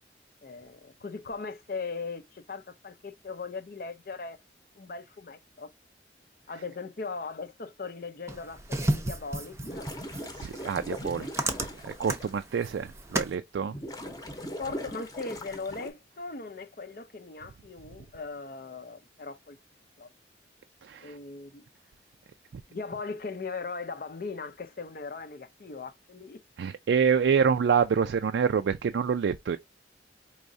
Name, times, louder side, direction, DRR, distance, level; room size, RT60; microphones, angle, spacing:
voice 1, 0.4-4.4 4.8-5.7 6.5-9.9 12.8-12.9 14.6-19.6 20.0-20.1 21.0-21.7 22.7-26.4, left 4 dB, 50° left, 0.5 m, -39 dB
sound 1, 8.3-13.3, right 2 dB, 15° right, 0.5 m, -33 dB
sound 2, 9.5-12.3 12.9-13.0 13.7-15.9, equal, 20° left, 0.8 m, -40 dB
voice 2, 10.3-11.6 11.8-13.7 20.8-21.2 26.6-29.6, right 6 dB, 90° right, 0.4 m, -27 dB
4.8 x 3.0 x 2.6 m
head